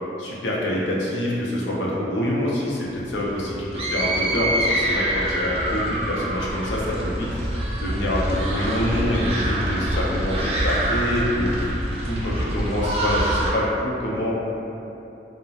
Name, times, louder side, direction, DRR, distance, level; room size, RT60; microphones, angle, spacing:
voice 1, 0.2-7.3 7.8-14.4, left 1 dB, 85° left, -5 dB, 0.5 m, -26 dB
sound 1, 2.9-13.5, right 1 dB, 35° right, 0.3 m, -26 dB
Livestock farm animals working animals, 6.8-12.8, equal, 10° right, 1.1 m, -42 dB
2.7 x 2.0 x 2.3 m, 2.8 s
head